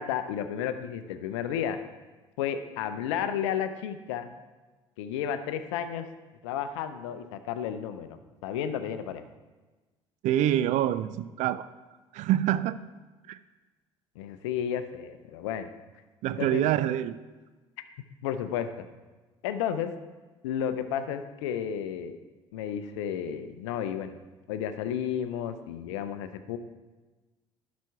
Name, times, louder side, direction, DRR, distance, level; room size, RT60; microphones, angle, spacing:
voice 1, 0.0-1.8 2.4-4.3 5.0-6.1 6.4-9.2 14.2-15.7 16.4-16.6 18.2-18.9 19.4-19.9 20.4-22.2 22.5-24.2 24.5-26.6, left 9 dB, 70° left, 10 dB, 0.6 m, -32 dB
voice 2, 10.2-11.7 12.1-12.8 13.3-13.4 16.2-17.2, right 12 dB, 50° right, 15 dB, 0.4 m, -26 dB
12.0 x 4.2 x 4.7 m, 1.2 s
figure-of-eight pair, 55°, 16 cm